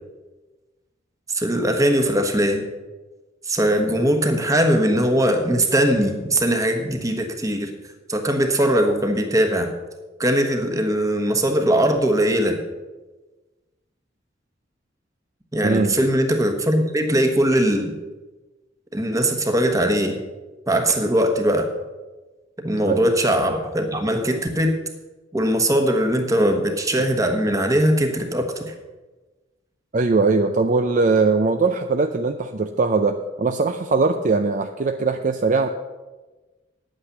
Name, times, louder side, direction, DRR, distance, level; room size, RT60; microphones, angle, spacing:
voice 1, 1.3-2.6 3.4-7.7 8.1-9.7 10.2-12.6 15.5-17.9 18.9-20.2 20.7-21.7 22.6-24.8 25.3-28.7, right 1 dB, 20° right, 4 dB, 1.3 m, -20 dB
voice 2, 15.6-16.0 22.9-23.1 29.9-35.7, right 3 dB, 45° right, 7 dB, 0.5 m, -20 dB
9.7 x 8.8 x 6.7 m, 1.2 s
head